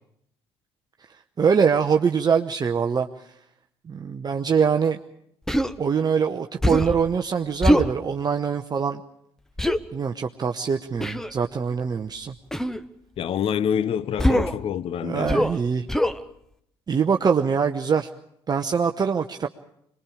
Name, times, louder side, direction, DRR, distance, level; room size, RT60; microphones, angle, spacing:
voice 1, 1.4-3.3 3.9-5.0 5.8-9.0 9.9-12.3 15.0-15.8 16.9-18.1 18.5-19.5, right 6 dB, 30° right, 0.9 m, -23 dB
Human voice, 5.5-5.7 6.6-7.0 7.6-7.9 9.6-9.8 11.0-11.3 12.5-12.8 14.2-14.6 15.3-15.6 15.9-16.2, equal, 5° left, 1.0 m, -22 dB
voice 2, 13.2-15.4, left 8 dB, 45° left, 0.7 m, -26 dB
26.0 x 21.0 x 5.0 m
figure-of-eight pair, 55°, 14 cm